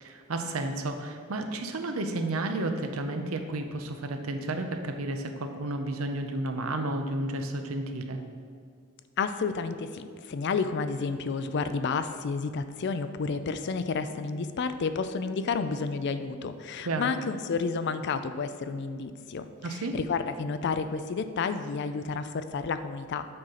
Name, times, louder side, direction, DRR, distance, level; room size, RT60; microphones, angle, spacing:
voice 1, 0.0-8.2 16.8-17.1 19.6-20.0, right 2 dB, 85° right, 6 dB, 0.7 m, -32 dB
voice 2, 9.2-23.3, left 4 dB, 55° left, 11 dB, 0.4 m, -31 dB
7.7 x 5.7 x 3.8 m, 2.2 s
head